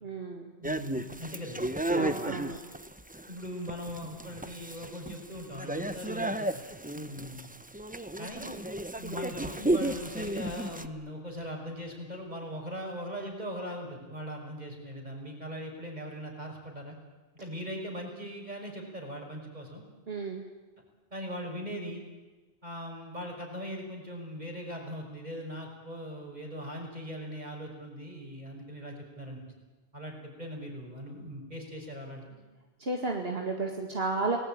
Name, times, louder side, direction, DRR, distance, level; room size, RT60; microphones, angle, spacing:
voice 1, 0.0-0.5 1.9-2.6 20.1-20.5 32.8-34.4, right 3 dB, 70° right, 1 dB, 2.4 m, -32 dB
sound 1, 0.6-10.9, right 1 dB, 10° right, 0.8 m, -33 dB
voice 2, 0.6-2.2 3.3-6.5 6.9-7.5 8.2-8.4 9.0-17.0 17.4-19.8 21.1-22.1 22.6-29.4 29.9-32.3, equal, 45° right, 2 dB, 5.9 m, -40 dB
29.5 x 19.5 x 9.0 m, 1.2 s
omnidirectional pair, 1.0 m